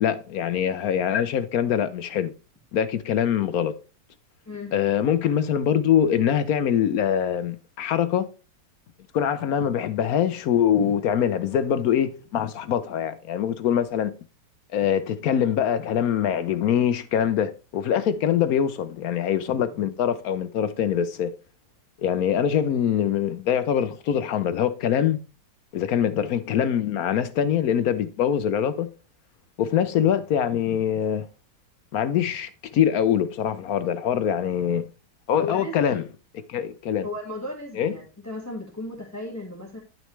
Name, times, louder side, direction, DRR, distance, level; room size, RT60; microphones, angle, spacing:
voice 1, 0.0-2.3 2.7-3.7 4.7-8.3 9.1-14.1 14.7-21.3 22.0-25.2 25.7-28.9 29.6-31.3 31.9-34.8 35.3-36.0 36.5-37.1 37.8-37.9, left 9 dB, 70° left, 0.9 m, -23 dB
voice 2, 4.4-4.7 35.4-36.0 37.0-39.8, left 2 dB, 10° left, 1.6 m, -35 dB
10.5 x 6.1 x 3.2 m
omnidirectional pair, 1.9 m